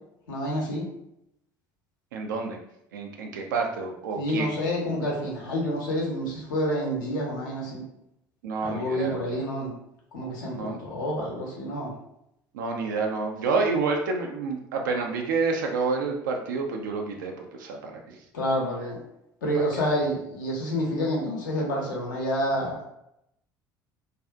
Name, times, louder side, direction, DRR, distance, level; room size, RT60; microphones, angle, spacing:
voice 1, 0.3-0.8 4.2-7.8 8.6-9.7 10.1-11.9 18.3-19.0 19.4-22.8, equal, 70° left, -2 dB, 0.7 m, -28 dB
voice 2, 2.1-2.6 2.9-4.5 8.4-9.4 10.5-10.8 12.5-18.2 19.6-19.8, right 4 dB, 70° right, 2 dB, 0.4 m, -29 dB
2.4 x 2.3 x 2.3 m, 0.79 s
figure-of-eight pair, 60°, 11 cm